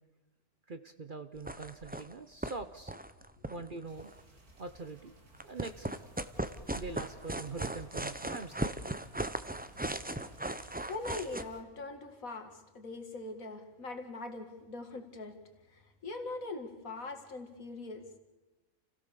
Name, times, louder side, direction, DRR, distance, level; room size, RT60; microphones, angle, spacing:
voice 1, 0.7-3.0 3.5-4.1 4.6-5.1 5.4-5.9 6.7-8.7, right 3 dB, 40° right, 9 dB, 0.9 m, -43 dB
sound 1, 1.4-2.1 2.4-2.5 2.8-4.2 5.3-11.4, right 1 dB, 15° right, 0.4 m, -37 dB
sound 2, 3.9-11.6, right 2 dB, 85° right, 3.2 m, -59 dB
voice 2, 10.6-15.4 15.7-18.2, left 3 dB, 70° left, 6 dB, 2.4 m, -42 dB
29.0 x 16.0 x 6.8 m, 1.2 s
omnidirectional pair, 1.5 m